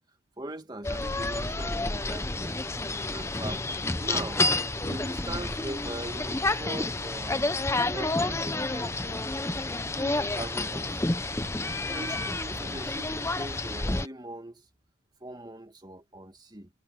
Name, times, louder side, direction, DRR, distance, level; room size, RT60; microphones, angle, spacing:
voice 1, 0.4-2.6 3.1-4.5 4.8-7.5 7.9-9.2 9.9-11.3 11.8-14.6 15.2-16.7, right 1 dB, 20° right, 2.2 m, -41 dB
sound 1, 0.8-14.1, left 2 dB, 15° left, 0.7 m, -30 dB
head